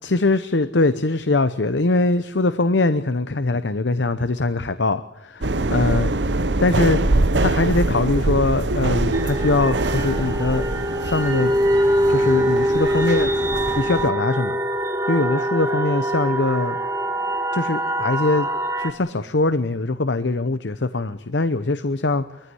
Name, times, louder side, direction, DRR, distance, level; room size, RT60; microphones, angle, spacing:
voice 1, 0.0-6.1 6.6-7.0 7.4-10.7 11.0-11.5 12.1-13.3 13.8-14.6 15.1-16.8 17.5-18.5 18.8-22.5, left 2 dB, 85° left, 12 dB, 0.9 m, -22 dB
sound 1, 5.4-14.1, right 2 dB, 80° right, 1.2 m, -23 dB
sound 2, 9.1-18.9, equal, 20° right, 2.4 m, -23 dB
23.0 x 15.0 x 9.8 m, 0.82 s
head